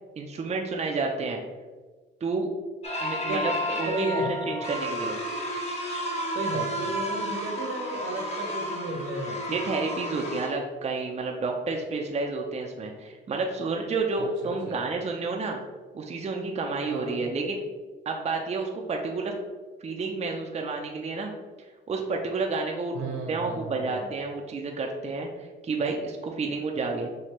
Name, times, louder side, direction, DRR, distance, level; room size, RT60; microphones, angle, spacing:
voice 1, 0.2-1.4 2.2-2.5 3.0-5.2 9.5-15.6 15.9-17.6 18.1-19.3 19.8-21.3 21.9-27.1, right 3 dB, 35° right, 1 dB, 0.5 m, -30 dB
sound 1, 2.8-10.5, equal, 30° left, 1.0 m, -32 dB
voice 2, 3.8-4.3 6.3-9.5 14.4-14.8 16.9-17.2 22.9-24.1, right 2 dB, 75° right, 1 dB, 1.0 m, -33 dB
5.8 x 2.7 x 3.1 m, 1.3 s
cardioid pair, 90°, 20 cm